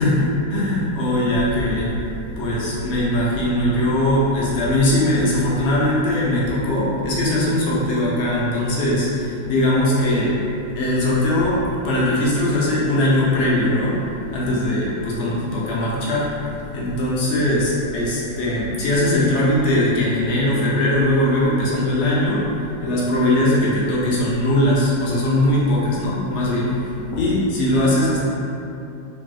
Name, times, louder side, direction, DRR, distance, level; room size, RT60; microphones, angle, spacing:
voice 1, 0.0-10.4 10.8-14.0 14.3-26.7 27.1-28.2, left 1 dB, 75° left, -6 dB, 0.6 m, -20 dB
3.1 x 2.5 x 2.3 m, 2.8 s
omnidirectional pair, 1.8 m